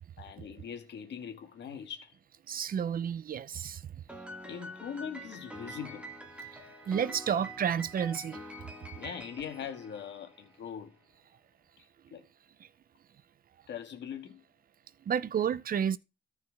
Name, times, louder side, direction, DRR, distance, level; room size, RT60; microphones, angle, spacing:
voice 1, 0.2-2.1 4.4-6.1 9.0-10.9 12.1-12.2 13.7-14.4, left 8 dB, 60° left, 2.2 m, -41 dB
voice 2, 2.5-3.8 6.9-8.4 15.1-16.0, right 8 dB, 45° right, 0.7 m, -30 dB
Piano, 4.1-10.6, equal, 5° right, 2.3 m, -46 dB
14.0 x 4.7 x 3.6 m
cardioid pair, 90°, 20 cm